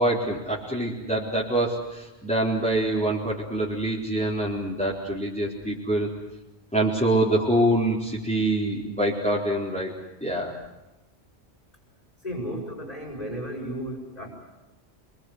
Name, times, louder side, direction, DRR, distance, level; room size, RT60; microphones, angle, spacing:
voice 1, 0.0-6.1 6.7-9.9 10.2-10.5, right 1 dB, 5° left, -6 dB, 4.2 m, -25 dB
voice 2, 12.2-14.3, equal, 40° left, -4 dB, 6.2 m, -34 dB
27.5 x 23.0 x 8.1 m, 1.0 s
omnidirectional pair, 1.1 m